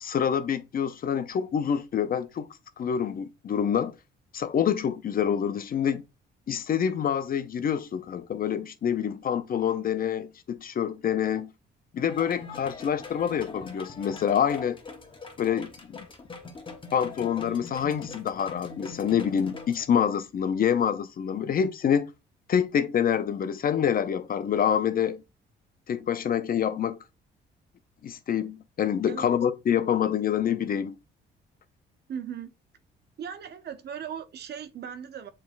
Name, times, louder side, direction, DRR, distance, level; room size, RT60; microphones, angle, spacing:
voice 1, 0.0-2.5 2.8-3.9 4.3-6.0 6.5-11.5 11.9-14.8 15.4-16.1 16.9-22.1 22.5-25.2 25.9-27.0 28.0-31.0, left 8 dB, 45° left, 0.5 m, -26 dB
sound 1, 12.0-19.8, left 4 dB, 25° left, 1.0 m, -43 dB
voice 2, 32.1-32.5 33.2-35.3, right 8 dB, 55° right, 0.6 m, -38 dB
7.0 x 3.1 x 2.4 m
cardioid pair, 90°, 20 cm